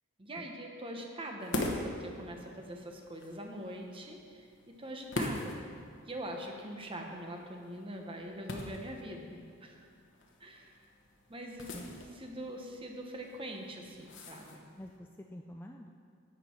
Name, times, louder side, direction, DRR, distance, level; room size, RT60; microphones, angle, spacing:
voice 1, 0.2-5.6 6.1-9.9 10.4-10.8 11.3-14.7, right 1 dB, 25° right, 2 dB, 1.0 m, -43 dB
sound 1, 1.4-15.0, left 2 dB, 55° left, 1.1 m, -43 dB
voice 2, 11.6-12.0 14.8-15.9, left 1 dB, 10° left, 2 dB, 0.3 m, -48 dB
11.0 x 8.4 x 4.5 m, 2.2 s
head